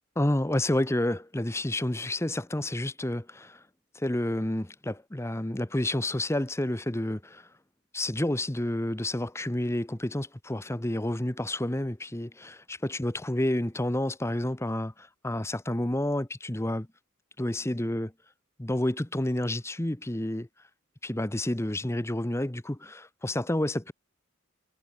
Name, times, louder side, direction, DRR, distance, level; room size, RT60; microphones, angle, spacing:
voice 1, 0.2-3.6 3.9-7.5 7.9-16.9 17.4-18.1 18.6-20.5 21.0-23.9, left 1 dB, 10° left, 0.9 m, -30 dB
head